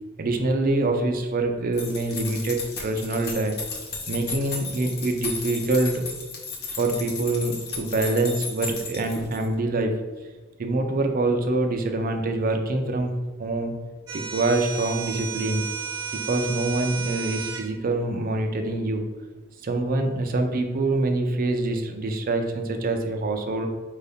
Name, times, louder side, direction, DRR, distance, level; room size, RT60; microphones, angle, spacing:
voice 1, 0.2-3.6 4.1-6.1 6.8-9.9 10.6-13.1 13.4-13.7 14.1-15.7 16.1-19.0 19.6-23.7, right 2 dB, 40° right, 5 dB, 0.5 m, -25 dB
sound 1, 1.7-9.5, left 4 dB, 50° left, 0.8 m, -35 dB
sound 2, 14.1-17.7, right 6 dB, 15° right, 0.8 m, -33 dB
4.5 x 2.7 x 3.4 m, 1.3 s
head